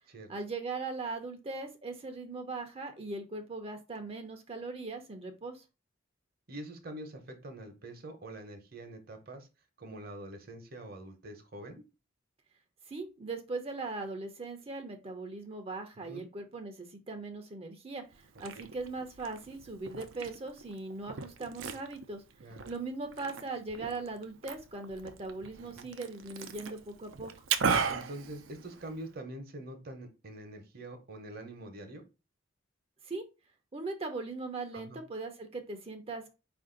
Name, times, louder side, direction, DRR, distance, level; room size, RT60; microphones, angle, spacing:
voice 1, 0.3-5.6 12.9-22.2 22.7-27.3 33.0-33.2 33.7-36.3, right 3 dB, 30° right, 6 dB, 0.6 m, -39 dB
voice 2, 6.5-9.5 9.8-11.8 16.1-16.2 18.5-18.6 22.4-22.7 25.6-25.9 27.9-32.0 34.7-35.0, right 1 dB, 50° right, 5 dB, 0.9 m, -45 dB
Liquid, 18.1-29.1, right 6 dB, 75° right, 0.6 m, -38 dB
4.8 x 2.6 x 3.8 m, 0.29 s
head